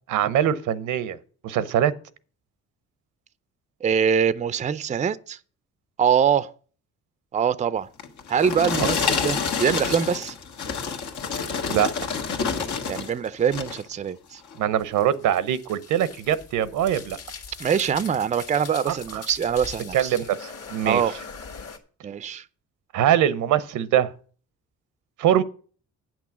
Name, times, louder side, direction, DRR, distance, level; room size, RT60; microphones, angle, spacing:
voice 1, 0.1-1.2 1.4-1.9 11.7-11.9 14.6-17.2 18.9-19.0 19.9-21.0 22.9-24.1 25.2-25.4, right 10 dB, 85° right, 0.8 m, -22 dB
voice 2, 3.8-5.4 6.0-6.5 7.3-7.9 8.3-10.4 12.9-14.4 17.6-20.2 20.8-21.1 22.0-22.4, right 7 dB, 25° right, 0.4 m, -23 dB
sound 1, 8.0-13.1 13.4-13.9 14.4-14.6, left 5 dB, 75° left, 1.6 m, -28 dB
sound 2, 14.8-21.8, left 5 dB, 55° left, 1.7 m, -41 dB
8.6 x 6.1 x 7.1 m
cardioid pair, 90°, 30 cm